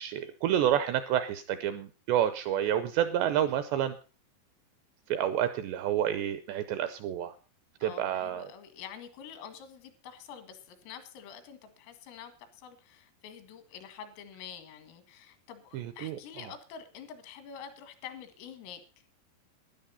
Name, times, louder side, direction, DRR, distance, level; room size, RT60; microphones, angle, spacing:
voice 1, 0.0-4.0 5.1-7.3 7.8-8.4 15.7-16.2, right 10 dB, 85° right, 11 dB, 2.5 m, -29 dB
voice 2, 7.8-18.8, left 8 dB, 85° left, 9 dB, 4.5 m, -47 dB
13.0 x 10.5 x 5.5 m, 0.36 s
omnidirectional pair, 5.8 m